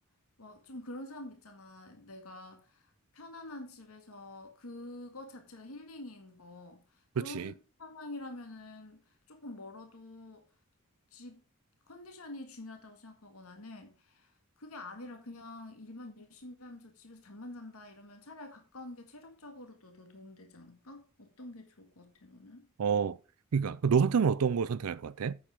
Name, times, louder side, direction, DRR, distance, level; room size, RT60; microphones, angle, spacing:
voice 1, 0.4-10.4 11.1-11.4 11.9-22.7, left 2 dB, 85° left, 1.8 m, -47 dB
voice 2, 7.2-7.5 22.8-23.2 23.5-25.3, right 6 dB, 85° right, 0.5 m, -28 dB
8.5 x 7.3 x 4.9 m
head